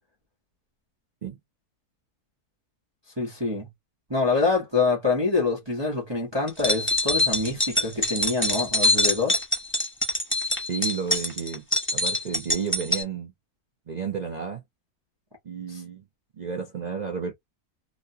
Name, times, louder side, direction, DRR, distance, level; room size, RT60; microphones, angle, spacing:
voice 1, 3.2-3.7 4.1-9.4 15.7-15.8, left 3 dB, 20° right, 0.8 m, -25 dB
sound 1, 6.5-13.0, left 2 dB, 10° left, 0.7 m, -24 dB
voice 2, 10.7-11.6 11.9-13.3 13.9-14.6 15.4-16.0 16.4-17.3, right 6 dB, 75° right, 0.4 m, -32 dB
3.0 x 2.2 x 2.7 m
omnidirectional pair, 1.7 m